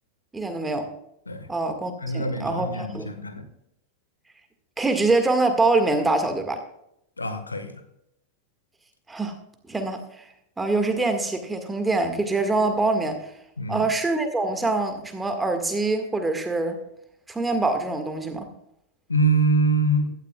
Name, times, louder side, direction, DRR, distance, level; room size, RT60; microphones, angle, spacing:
voice 1, 0.3-0.9 1.5-3.1 4.8-6.6 9.1-9.3 9.7-10.2 10.6-13.3 13.7-16.8 17.3-18.5, right 3 dB, 10° right, 6 dB, 1.8 m, -24 dB
voice 2, 2.0-3.4 7.2-7.8 13.6-13.8 19.1-20.1, right 2 dB, 80° left, 9 dB, 1.4 m, -24 dB
16.0 x 12.5 x 2.4 m, 0.78 s
figure-of-eight pair, 90°, 0 cm